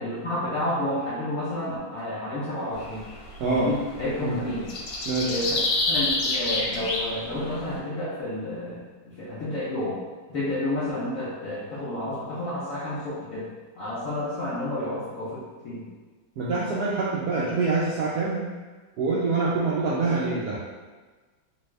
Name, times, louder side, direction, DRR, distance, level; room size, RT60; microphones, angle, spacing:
voice 1, 0.0-3.0 3.5-4.7 5.3-5.6 5.9-10.0 10.3-13.5 13.8-15.8, left 1 dB, 60° left, -10 dB, 0.9 m, -30 dB
sound 1, 2.7-7.7, left 2 dB, 75° left, 1.4 m, -28 dB
voice 2, 3.4-3.7 4.2-4.4 5.1-5.3 16.4-18.4 19.0-20.6, right 3 dB, 75° right, -7 dB, 0.9 m, -25 dB
3.3 x 2.3 x 3.1 m, 1.3 s
omnidirectional pair, 2.2 m